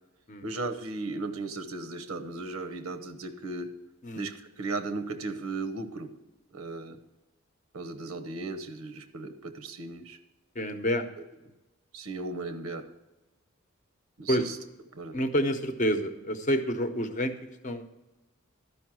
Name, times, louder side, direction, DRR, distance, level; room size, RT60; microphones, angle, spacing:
voice 1, 0.4-3.8 4.1-6.1 6.5-7.0 7.7-10.2 11.9-12.9 14.2-14.6 14.9-15.2, right 3 dB, 90° right, 7 dB, 0.9 m, -36 dB
voice 2, 10.5-11.1 14.3-14.5 15.1-17.3 17.6-17.8, equal, 35° left, 7 dB, 0.7 m, -28 dB
12.5 x 5.4 x 6.1 m, 1.0 s
head